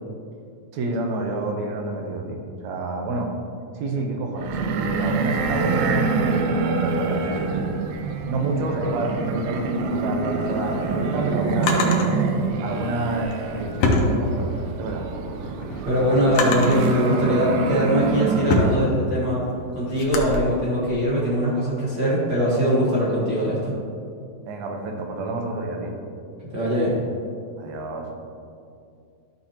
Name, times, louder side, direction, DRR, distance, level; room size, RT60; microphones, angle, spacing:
voice 1, 0.7-3.3 3.8-7.7 8.3-12.0 12.6-15.1 24.5-26.0 27.6-28.1, right 2 dB, 70° right, 2 dB, 1.8 m, -28 dB
sound 1, 4.4-18.9, right 4 dB, 90° right, 2.5 m, -26 dB
Drawer open or close, 10.4-12.1 13.1-14.8 15.2-16.9 17.5-20.4, left 3 dB, 80° left, 1.4 m, -27 dB
voice 2, 15.8-19.4 19.7-23.7 26.5-27.0, equal, 45° right, -8 dB, 1.4 m, -21 dB
12.0 x 6.3 x 2.9 m, 2.4 s
omnidirectional pair, 4.0 m